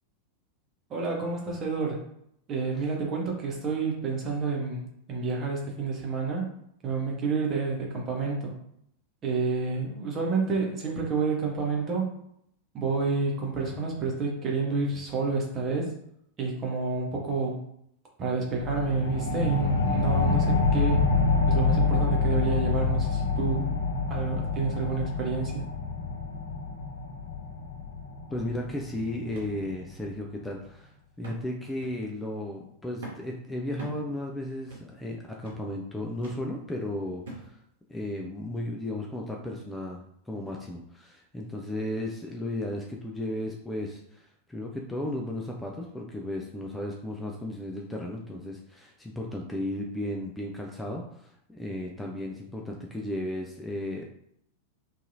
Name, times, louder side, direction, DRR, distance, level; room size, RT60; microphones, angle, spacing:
voice 1, 0.9-2.1 2.5-6.5 6.8-8.5 9.2-12.1 12.7-16.0 16.4-17.6 18.2-21.1 21.5-23.7 24.1-25.7, right 4 dB, 30° right, -1 dB, 0.8 m, -29 dB
sound 1, 18.6-29.7, left 4 dB, 70° left, 0.4 m, -27 dB
voice 2, 28.3-37.6 37.9-54.0, left 1 dB, 5° left, -1 dB, 0.3 m, -35 dB
sound 2, 29.3-29.6 30.0-30.1 31.2-31.5 31.8-32.1 33.0-33.3 33.8-34.1 34.7-34.9 35.4-35.7 36.2-36.5 37.3-37.5 38.2-38.3, right 2 dB, 60° right, 0.7 m, -43 dB
2.7 x 2.5 x 2.6 m, 0.73 s
figure-of-eight pair, 90°, 0 cm